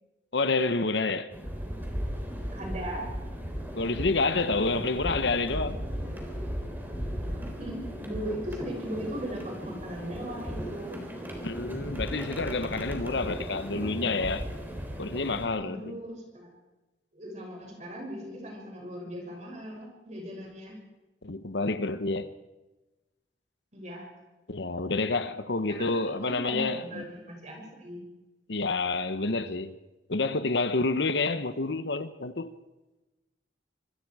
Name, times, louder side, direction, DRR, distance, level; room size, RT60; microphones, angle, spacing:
voice 1, 0.3-1.3 3.8-5.8 11.4-14.5 15.0-15.8 21.2-22.3 24.5-27.0 28.5-29.7 30.1-32.5, left 3 dB, 65° left, 1.0 m, -28 dB
sound 1, 1.3-15.5, equal, 10° right, 3.6 m, -36 dB
voice 2, 2.5-3.1 7.3-11.0 15.6-16.5 17.1-20.8 23.7-24.1 25.8-28.0, equal, 40° right, 6.9 m, -38 dB
25.5 x 23.0 x 4.9 m
head